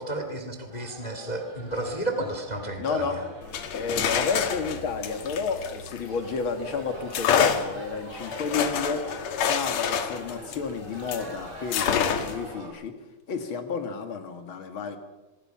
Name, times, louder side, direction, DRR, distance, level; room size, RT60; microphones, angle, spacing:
voice 1, 0.0-3.2, right 1 dB, 15° left, 5 dB, 2.2 m, -32 dB
sound 1, 0.7-12.7, right 1 dB, 40° right, 8.0 m, -44 dB
voice 2, 2.8-3.2 3.7-9.1 9.4-13.0 13.3-15.0, left 5 dB, 45° left, 7 dB, 2.5 m, -31 dB
sound 2, 3.4-6.5 7.1-11.3 11.7-12.5, left 7 dB, 70° left, 2.7 m, -27 dB
24.5 x 21.5 x 5.9 m, 1.1 s
omnidirectional pair, 3.3 m